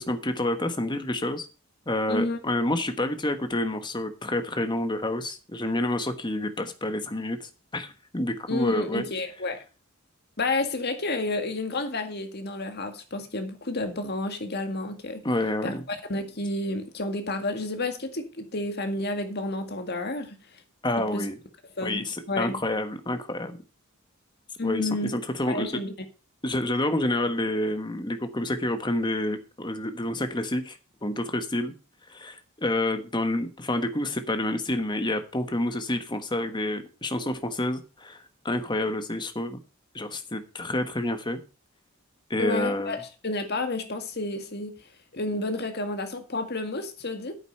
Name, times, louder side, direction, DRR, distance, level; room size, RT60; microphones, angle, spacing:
voice 1, 0.0-1.5 1.9-9.1 15.2-15.8 20.8-21.4 21.8-23.5 24.6-25.7 26.4-31.7 32.1-39.6 39.9-41.4 42.3-43.0, left 1 dB, 20° left, 1.3 m, -28 dB
voice 2, 2.1-2.4 8.5-9.6 10.4-15.2 15.6-20.4 21.1-21.3 21.8-22.6 24.6-25.1 25.4-25.9 42.4-44.7 45.1-47.3, left 2 dB, 50° left, 1.9 m, -30 dB
9.3 x 8.1 x 5.5 m
head